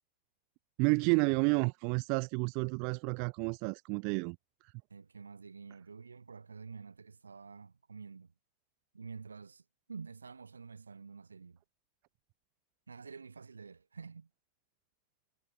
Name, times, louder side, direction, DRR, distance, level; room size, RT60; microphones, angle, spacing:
voice 1, 0.8-4.4, right 38 dB, 45° right, 0.3 m, -30 dB
voice 2, 4.9-8.3 8.9-9.6 9.9-11.6 12.9-14.3, right 5 dB, 75° right, 1.8 m, -48 dB
figure-of-eight pair, 90°, 0 cm